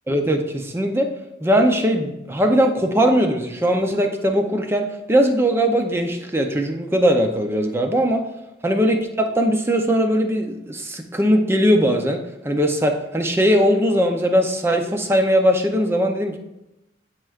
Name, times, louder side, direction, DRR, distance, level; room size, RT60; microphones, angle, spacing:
voice 1, 0.1-1.1 1.4-8.2 8.6-16.4, equal, 15° right, 5 dB, 0.6 m, -20 dB
10.0 x 4.5 x 2.4 m, 0.92 s
head